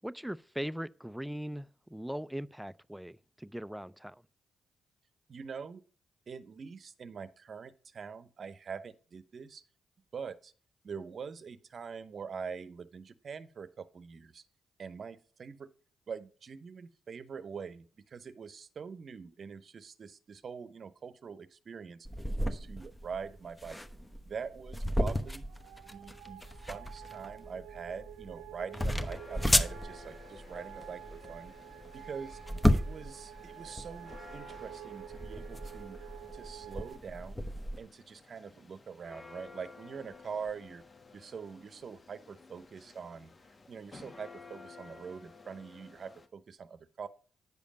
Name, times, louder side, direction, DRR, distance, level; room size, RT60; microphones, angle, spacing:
voice 1, 0.0-4.2, equal, 5° right, 0.4 m, -40 dB
voice 2, 5.3-5.8 6.3-9.6 10.1-10.5 10.8-14.4 14.8-15.7 16.1-22.1 22.4-23.8 24.2-25.5 25.9-31.5 31.9-32.4 32.7-36.0 36.3-37.4 37.8-40.8 41.1-43.3 43.7-47.1, right 6 dB, 55° right, 0.8 m, -44 dB
sound 1, 22.0-37.8, left 1 dB, 15° left, 1.0 m, -34 dB
sound 2, 24.5-37.0, right 13 dB, 90° right, 0.5 m, -50 dB
sound 3, 28.7-46.3, left 4 dB, 40° left, 1.2 m, -54 dB
9.5 x 5.1 x 5.2 m
supercardioid pair, 50°, 0 cm